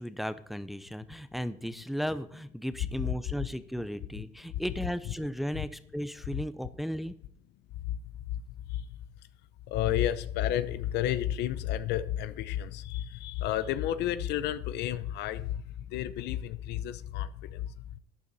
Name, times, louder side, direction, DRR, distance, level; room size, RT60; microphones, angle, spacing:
voice 1, 0.0-7.1, equal, ahead, 0.6 m, -35 dB
voice 2, 9.7-17.7, left 12 dB, 85° left, 0.8 m, -31 dB
12.0 x 9.7 x 4.2 m
cardioid pair, 110°, 17 cm